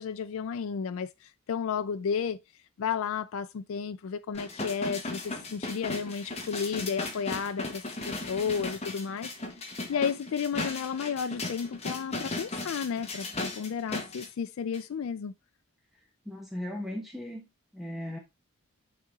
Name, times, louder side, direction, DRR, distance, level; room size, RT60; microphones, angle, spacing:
voice 1, 0.0-2.4 2.8-9.3 9.9-15.3, left 6 dB, 65° left, 0.4 m, -32 dB
sound 1, 4.3-14.3 14.7-14.8, left 2 dB, 30° left, 1.5 m, -36 dB
voice 2, 16.2-17.5 17.7-18.2, left 1 dB, ahead, 1.1 m, -37 dB
9.8 x 3.9 x 3.5 m
head